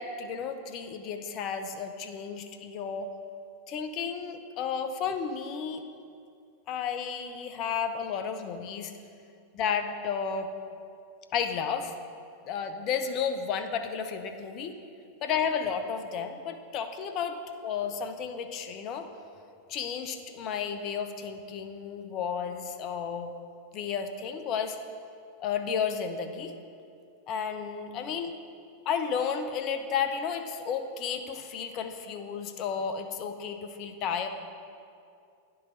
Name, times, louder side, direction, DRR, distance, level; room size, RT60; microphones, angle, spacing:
voice 1, 0.0-3.1 3.7-5.8 6.7-8.9 9.5-10.5 11.3-11.9 12.5-14.8 15.2-17.3 17.6-19.1 19.7-23.3 23.7-24.8 25.4-26.5 27.3-28.3 28.9-34.3, left 6 dB, 40° left, 7 dB, 0.5 m, -32 dB
9.9 x 3.8 x 4.0 m, 2.4 s
figure-of-eight pair, 90°, 0 cm